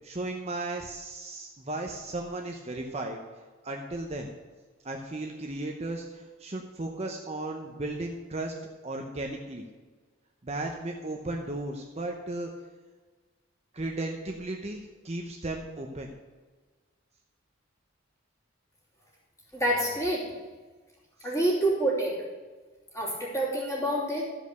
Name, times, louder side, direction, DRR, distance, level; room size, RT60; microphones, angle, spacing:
voice 1, 0.0-3.2 3.6-4.3 4.8-8.5 8.8-9.6 10.4-12.5 13.7-16.1 21.2-21.3, right 2 dB, 30° right, 2 dB, 0.8 m, -35 dB
voice 2, 19.5-20.3 21.2-22.1 22.9-24.2, right 1 dB, 15° left, -4 dB, 3.0 m, -27 dB
13.0 x 5.3 x 6.7 m, 1.3 s
head